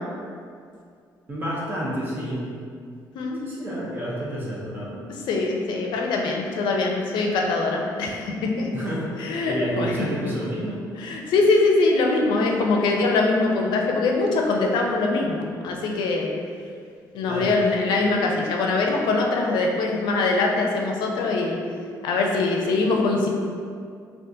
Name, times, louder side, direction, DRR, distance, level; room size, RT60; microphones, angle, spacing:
voice 1, 1.3-2.4 3.4-5.0 8.7-9.1 9.4-10.8 17.3-17.5, right 1 dB, 25° right, -6 dB, 0.7 m, -29 dB
Organ, 4.5-14.7, left 1 dB, 25° left, 0.6 m, -46 dB
voice 2, 5.3-8.7 9.2-10.1 11.0-16.3 17.1-21.6 22.0-23.3, left 3 dB, 85° left, 0 dB, 0.4 m, -23 dB
3.6 x 2.4 x 2.6 m, 2.2 s
cardioid pair, 150°, 8 cm